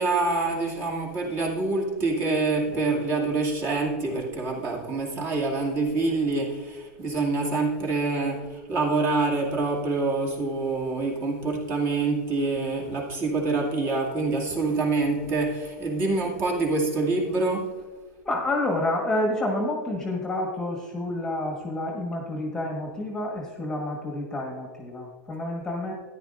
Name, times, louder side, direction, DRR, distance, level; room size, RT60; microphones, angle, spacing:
voice 1, 0.0-17.7, right 3 dB, 35° right, -2 dB, 2.4 m, -26 dB
voice 2, 18.2-25.9, left 1 dB, 5° left, 0 dB, 1.4 m, -29 dB
13.5 x 10.5 x 2.5 m, 1.4 s
supercardioid pair, 150°, 8 cm